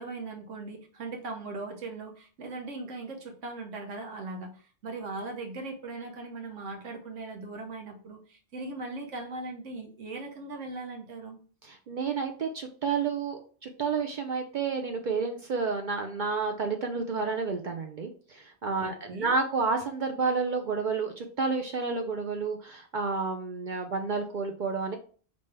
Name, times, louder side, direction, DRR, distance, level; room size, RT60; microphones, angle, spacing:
voice 1, 0.0-11.4 18.8-19.3, right 3 dB, 90° right, 3 dB, 1.2 m, -39 dB
voice 2, 11.9-25.0, right 4 dB, 55° right, 4 dB, 0.5 m, -30 dB
5.2 x 2.7 x 3.3 m, 0.42 s
omnidirectional pair, 1.2 m